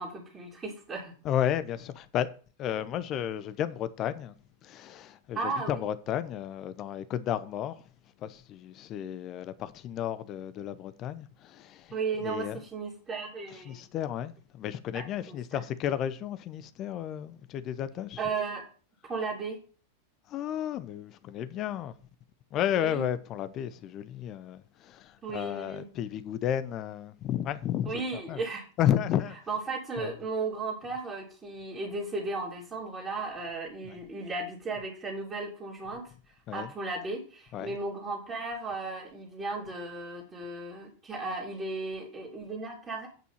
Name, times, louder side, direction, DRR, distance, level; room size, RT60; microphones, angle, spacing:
voice 1, 0.0-1.1 5.3-5.8 11.9-13.8 14.9-15.6 18.2-18.6 19.0-19.6 22.7-23.0 25.2-25.9 27.8-28.6 29.5-36.1 36.5-43.1, right 3 dB, 20° right, 3.1 m, -35 dB
voice 2, 1.2-2.3 2.6-4.4 4.6-5.4 5.7-7.8 8.2-11.9 12.2-12.6 13.6-18.2 20.3-21.9 22.5-27.9 28.3-28.4 28.8-29.4 30.0-30.1 33.9-34.0 36.5-36.7 37.5-37.7, left 10 dB, 35° left, 0.7 m, -32 dB
9.0 x 5.4 x 5.8 m
figure-of-eight pair, 90°, 0 cm